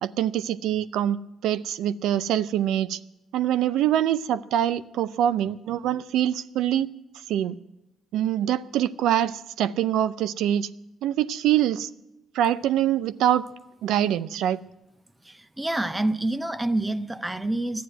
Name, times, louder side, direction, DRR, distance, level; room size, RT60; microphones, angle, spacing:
voice 1, 0.0-1.2 1.4-3.0 3.3-6.9 7.3-7.6 8.1-10.7 11.0-11.9 12.3-13.4 13.8-14.6, right 11 dB, 80° right, 0.5 m, -24 dB
voice 2, 15.2-17.8, right 1 dB, 10° right, 0.7 m, -27 dB
12.0 x 9.4 x 9.2 m
cardioid pair, 85°, 0 cm